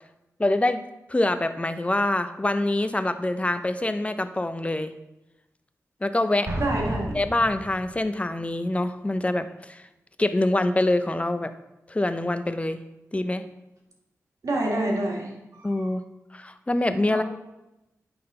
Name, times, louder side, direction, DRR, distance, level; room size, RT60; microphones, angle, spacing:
voice 1, 0.4-0.8 1.1-4.9 6.0-6.5 7.1-9.8 10.2-11.5 11.9-12.8 13.1-13.4 15.6-16.0 16.3-17.2, left 1 dB, 20° left, 10 dB, 0.6 m, -25 dB
Explosion, 6.4-8.0, right 1 dB, 55° right, 2.1 m, -32 dB
voice 2, 6.6-7.2 14.4-15.7 17.1-17.2, right 1 dB, 80° right, -1 dB, 1.7 m, -27 dB
8.6 x 3.9 x 5.4 m, 0.95 s
cardioid pair, 55°, 6 cm